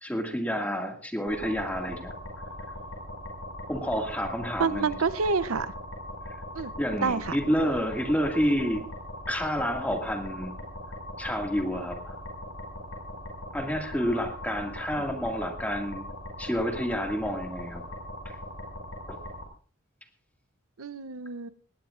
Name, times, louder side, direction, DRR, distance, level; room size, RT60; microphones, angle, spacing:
voice 1, 0.0-2.1 3.7-5.0 6.8-8.8 9.3-10.5 11.2-12.2 13.5-16.1 16.4-17.8 19.1-19.2, equal, 5° left, 2 dB, 2.1 m, -29 dB
sound 1, 1.3-19.4, left 1 dB, 60° left, 5.8 m, -40 dB
voice 2, 4.6-5.7 6.6-6.7 7.0-7.4 20.8-21.5, right 4 dB, 80° right, 14 dB, 0.7 m, -28 dB
19.5 x 18.0 x 2.5 m, 0.43 s
head